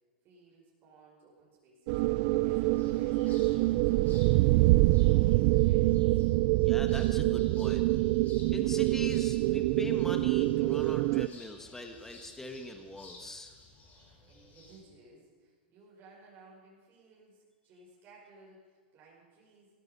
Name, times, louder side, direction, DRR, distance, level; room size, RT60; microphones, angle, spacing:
voice 1, 0.2-2.0 2.4-4.6 5.0-6.3 14.0-19.7, right 3 dB, 35° right, -4 dB, 5.2 m, -58 dB
sound 1, 1.9-11.3, right 20 dB, 55° right, 0.3 m, -25 dB
sound 2, 2.5-14.8, left 2 dB, 30° left, 5.8 m, -56 dB
voice 2, 6.6-7.9 8.5-13.5, left 2 dB, 5° left, 5 dB, 1.5 m, -42 dB
16.5 x 13.5 x 5.5 m, 1.5 s
hypercardioid pair, 120°, 6 cm